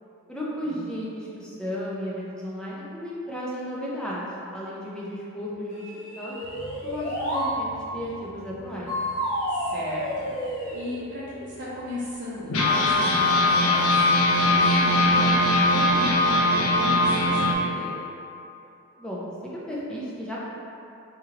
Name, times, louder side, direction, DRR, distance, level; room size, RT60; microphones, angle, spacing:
voice 1, 0.3-4.2 4.5-5.9 6.2-6.3 6.8-8.9 19.0-20.4, equal, 5° left, -7 dB, 0.5 m, -34 dB
sound 1, 5.7-7.5 8.9-10.9, equal, 40° left, 1.3 m, -30 dB
sound 2, 6.4-9.6 10.1-10.2 10.4-10.7 11.3-11.4 12.5-17.5, left 2 dB, 75° left, 0.5 m, -21 dB
voice 2, 9.5-17.9, left 1 dB, 50° right, -9 dB, 0.6 m, -36 dB
3.1 x 2.9 x 3.7 m, 2.7 s
head